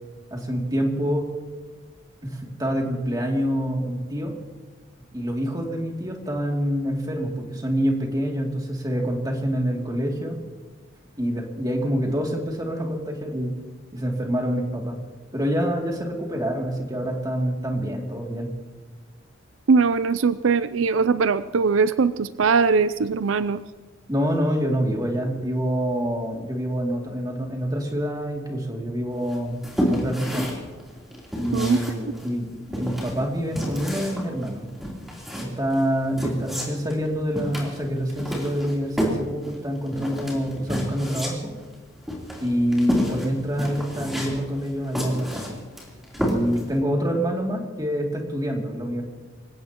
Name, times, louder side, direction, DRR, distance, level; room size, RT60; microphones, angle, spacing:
voice 1, 0.3-1.3 2.2-4.3 5.1-10.4 11.2-13.5 13.9-15.0 15.3-18.5 24.1-30.5 31.3-34.7 35.6-41.5 42.4-45.6 46.3-49.0, equal, 20° right, 0 dB, 2.6 m, -26 dB
voice 2, 19.7-23.6 31.5-31.8, right 5 dB, 80° right, 14 dB, 0.5 m, -21 dB
sound 1, 29.3-46.8, equal, ahead, 3.4 m, -30 dB
26.5 x 16.5 x 3.0 m, 1.4 s
head